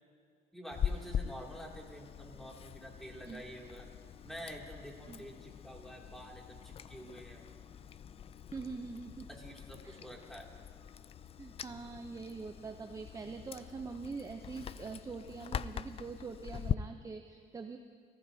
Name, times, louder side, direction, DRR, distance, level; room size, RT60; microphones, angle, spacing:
voice 1, 0.5-3.9 4.2-7.5 9.3-10.4, equal, ahead, -1 dB, 2.6 m, -48 dB
Chewing mastication, 0.7-16.7, left 8 dB, 35° left, 0.4 m, -43 dB
voice 2, 8.5-9.3 9.8-10.0 11.4-17.8, right 4 dB, 20° right, 6 dB, 0.6 m, -44 dB
30.0 x 15.0 x 2.8 m, 2.2 s
cardioid pair, 110°, 17 cm